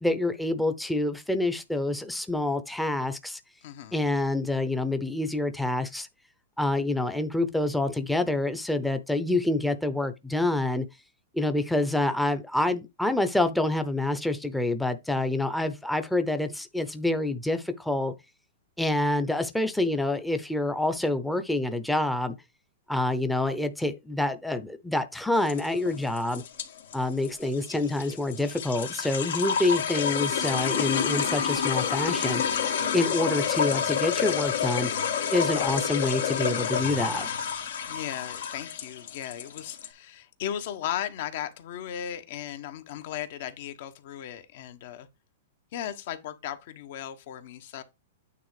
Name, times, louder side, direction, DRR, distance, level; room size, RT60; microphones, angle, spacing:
voice 1, 0.0-3.4 3.9-6.1 6.6-10.8 11.3-18.1 18.8-22.3 22.9-26.4 26.9-32.4 32.9-34.9 35.3-37.3, left 2 dB, 5° left, 0.7 m, -27 dB
voice 2, 3.6-4.0 37.9-45.1 45.7-47.8, left 10 dB, 55° left, 1.2 m, -36 dB
sound 1, 25.3-39.9, left 7 dB, 75° left, 1.7 m, -29 dB
9.1 x 3.6 x 4.9 m
hypercardioid pair, 150°, 0 cm